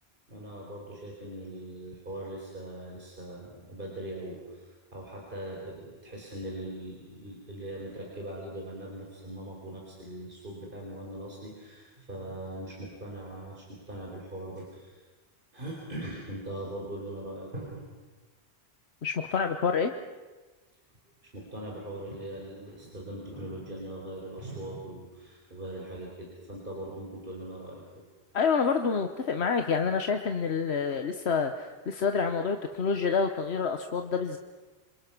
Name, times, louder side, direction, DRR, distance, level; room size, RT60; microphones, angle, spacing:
voice 1, 0.3-15.0 15.5-17.8 21.2-28.0, right 1 dB, 55° right, -2 dB, 4.7 m, -41 dB
voice 2, 19.0-19.9 28.3-34.4, left 5 dB, 80° left, 6 dB, 1.4 m, -28 dB
27.5 x 27.0 x 6.1 m, 1.3 s
omnidirectional pair, 1.1 m